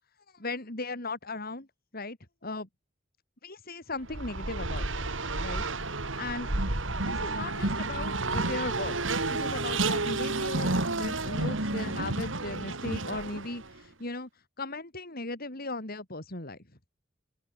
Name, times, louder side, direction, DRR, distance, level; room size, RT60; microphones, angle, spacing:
voice 1, 0.3-1.7 1.9-2.2 2.4-2.7 3.4-5.0 5.4-5.6 6.2-6.5 7.0-9.0 9.3-14.3 14.6-16.6, left 2 dB, 50° left, 3.9 m, -37 dB
Race car auto racing, 4.0-13.7, right 2 dB, 70° right, 3.2 m, -31 dB
open air
head